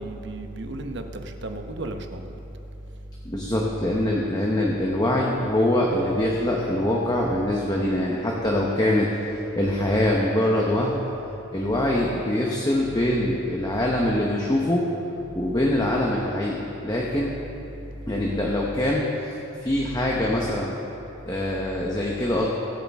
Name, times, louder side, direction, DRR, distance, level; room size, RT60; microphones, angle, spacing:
voice 1, 0.0-2.4, right 2 dB, 60° right, 5 dB, 0.9 m, -34 dB
voice 2, 3.2-9.1 9.6-11.0 11.5-14.8 15.3-17.3 18.1-19.0 19.6-20.7 21.2-22.5, left 1 dB, 20° left, -2 dB, 1.0 m, -23 dB
23.0 x 8.4 x 3.6 m, 3.0 s
head